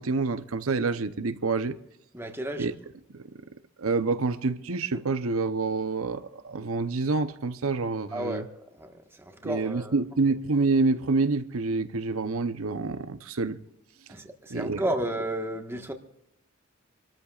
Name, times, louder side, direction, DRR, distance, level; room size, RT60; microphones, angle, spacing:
voice 1, 0.0-1.8 2.6-2.7 3.8-8.5 9.4-13.6 14.5-14.8, right 3 dB, 90° right, 0.8 m, -27 dB
voice 2, 2.1-2.7 8.1-8.9 9.2-9.9 14.1-15.9, right 1 dB, 10° right, 1.4 m, -32 dB
27.5 x 13.5 x 2.5 m
head